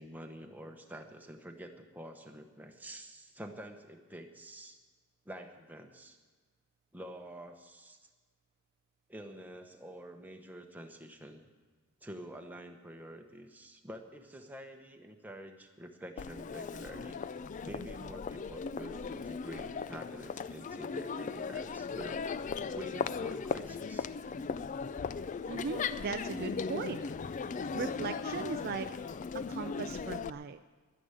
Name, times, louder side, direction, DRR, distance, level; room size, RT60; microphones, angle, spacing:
voice 1, 0.0-4.8 5.2-6.2 6.9-8.0 9.1-11.4 12.0-17.2 17.7-22.2 22.7-24.1, right 1 dB, 10° right, 4 dB, 1.0 m, -47 dB
Crowd, 16.2-30.3, left 5 dB, 35° left, 0.3 m, -38 dB
voice 2, 25.5-27.0 27.7-28.9 29.5-30.6, right 5 dB, 45° right, 7 dB, 0.4 m, -38 dB
11.0 x 10.0 x 9.0 m, 1.4 s
head